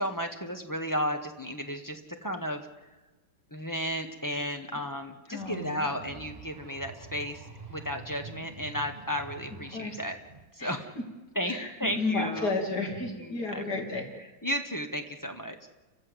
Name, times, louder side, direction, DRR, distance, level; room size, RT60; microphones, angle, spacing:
voice 1, 0.0-2.7 3.5-10.2 10.5-10.9 11.3-12.5 13.0-13.6 14.4-15.7, equal, 10° left, 5 dB, 1.0 m, -33 dB
voice 2, 5.3-5.9 9.7-10.0 10.6-10.7 11.4-14.1, left 3 dB, 55° left, 2 dB, 3.0 m, -32 dB
sound 1, 5.4-10.4, right 4 dB, 25° right, 1.1 m, -47 dB
30.0 x 14.5 x 8.1 m, 1.2 s
omnidirectional pair, 2.2 m